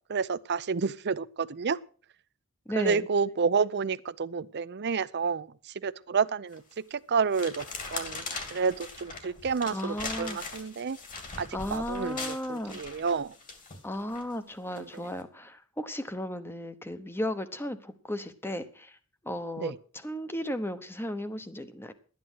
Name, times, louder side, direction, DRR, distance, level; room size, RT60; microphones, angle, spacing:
voice 1, 0.1-1.8 2.8-5.5 5.8-7.6 7.9-11.0 11.4-13.3 14.8-15.0 19.6-19.7, right 5 dB, 50° right, 0.6 m, -30 dB
voice 2, 2.7-3.0 9.6-10.4 11.5-12.8 13.8-19.0 19.2-21.9, left 1 dB, 10° left, 1.0 m, -35 dB
sound 1, 6.5-6.8 7.3-14.2 14.7-15.0, left 3 dB, 40° left, 2.4 m, -40 dB
12.5 x 9.6 x 6.2 m
head